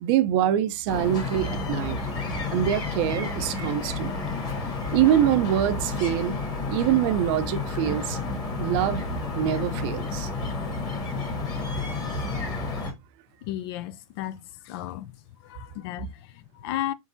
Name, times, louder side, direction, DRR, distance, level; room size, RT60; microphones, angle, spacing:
voice 1, 0.0-2.0 2.5-4.2 4.9-6.4 6.7-8.2 8.6-9.1 9.3-10.3, right 11 dB, 45° right, 0.5 m, -24 dB
sound 1, 0.9-12.9, left 3 dB, 25° left, 1.5 m, -31 dB
voice 2, 13.4-15.2 15.4-16.9, left 13 dB, 50° left, 0.4 m, -34 dB
4.6 x 3.7 x 2.6 m
hypercardioid pair, 125°, 17 cm